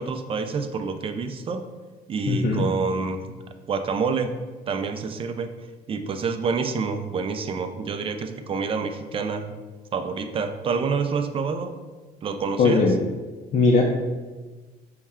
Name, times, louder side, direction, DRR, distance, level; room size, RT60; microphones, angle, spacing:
voice 1, 0.0-1.6 2.1-3.4 3.7-4.3 4.7-5.5 5.9-9.5 9.9-11.7 12.2-12.8, right 5 dB, 35° right, 8 dB, 0.4 m, -27 dB
voice 2, 2.3-2.6 12.6-12.9 13.5-13.8, left 4 dB, 45° left, -2 dB, 0.5 m, -19 dB
5.5 x 2.1 x 3.6 m, 1.3 s
cardioid pair, 110°, 17 cm